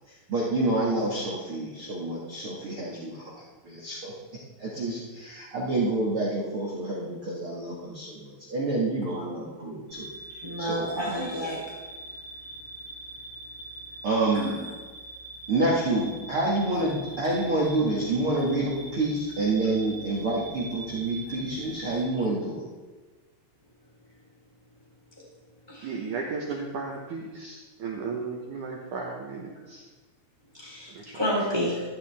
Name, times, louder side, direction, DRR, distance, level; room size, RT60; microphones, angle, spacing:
voice 1, 0.3-3.3 3.6-10.1 10.6-11.3 14.0-14.6 15.5-22.6, right 2 dB, 65° right, -5 dB, 1.3 m, -28 dB
sound 1, 9.9-22.0, right 2 dB, 35° right, 2.0 m, -43 dB
voice 2, 10.4-11.6 14.3-14.4 25.7-25.9 30.5-31.8, equal, 5° right, -5 dB, 2.9 m, -30 dB
voice 3, 25.8-29.8 30.9-31.2, right 4 dB, 85° right, -1 dB, 1.7 m, -35 dB
14.0 x 11.5 x 3.5 m, 1.3 s
omnidirectional pair, 5.3 m